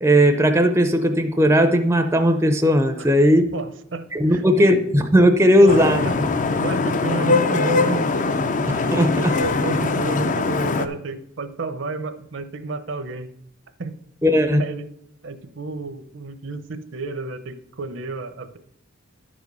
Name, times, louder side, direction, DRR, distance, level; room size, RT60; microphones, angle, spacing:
voice 1, 0.0-3.5 4.1-6.0 8.9-9.3 14.2-14.6, equal, 15° right, 7 dB, 0.5 m, -17 dB
voice 2, 3.5-4.7 5.6-6.3 6.6-8.4 9.2-13.3 13.8-14.0 14.6-14.9 15.2-18.6, right 3 dB, 65° right, 11 dB, 0.7 m, -31 dB
Vehicle horn car horn honking / Traffic noise roadway noise, 5.7-10.9, left 3 dB, 40° left, 0.5 m, -22 dB
11.0 x 5.1 x 5.3 m, 0.77 s
head